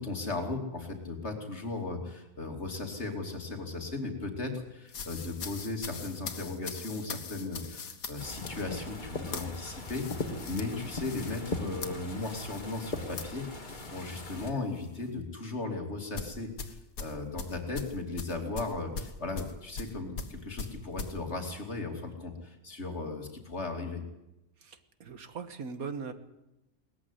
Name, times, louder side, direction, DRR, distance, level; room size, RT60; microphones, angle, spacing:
voice 1, 0.0-24.0, left 3 dB, 50° left, 3 dB, 3.1 m, -37 dB
sound 1, 4.9-14.5 14.8-15.1 16.2-21.2, left 5 dB, 85° left, 1.9 m, -42 dB
sound 2, 8.2-14.5, left 2 dB, 35° left, 2.3 m, -39 dB
voice 2, 24.6-26.1, right 5 dB, 85° right, 10 dB, 1.9 m, -40 dB
19.0 x 14.5 x 9.8 m, 0.93 s
omnidirectional pair, 1.5 m